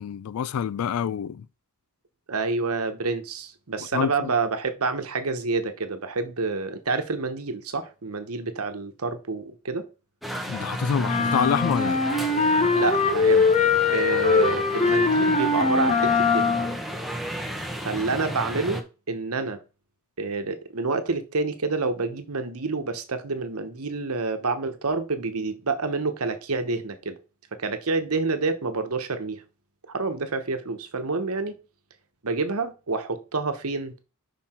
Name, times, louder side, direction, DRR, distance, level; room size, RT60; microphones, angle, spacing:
voice 1, 0.0-1.5 3.9-4.3 10.5-12.0, left 7 dB, 70° left, 0.3 m, -27 dB
voice 2, 2.3-9.9 12.7-13.4 13.9-16.5 17.9-19.6 20.2-27.2 27.6-29.4 29.9-31.6 32.2-33.9, right 3 dB, 75° right, 1.1 m, -28 dB
sound 1, 10.2-18.8, equal, ahead, 1.0 m, -33 dB
Clarinet - Asharp major - bad-tempo-legato-rhythm, 11.0-16.8, left 4 dB, 30° left, 0.8 m, -21 dB
5.8 x 5.7 x 4.4 m
head